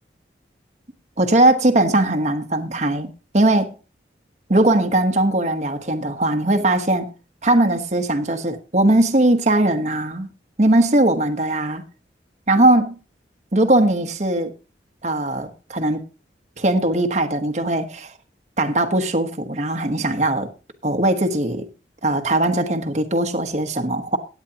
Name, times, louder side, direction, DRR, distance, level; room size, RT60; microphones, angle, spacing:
voice 1, 1.2-3.7 4.5-7.1 7.4-10.3 10.6-11.9 12.5-13.0 13.5-14.5 15.0-16.0 16.6-18.1 18.6-20.5 20.8-21.7 22.0-24.2, right 1 dB, 40° right, 1.2 m, -19 dB
16.5 x 9.5 x 2.9 m
head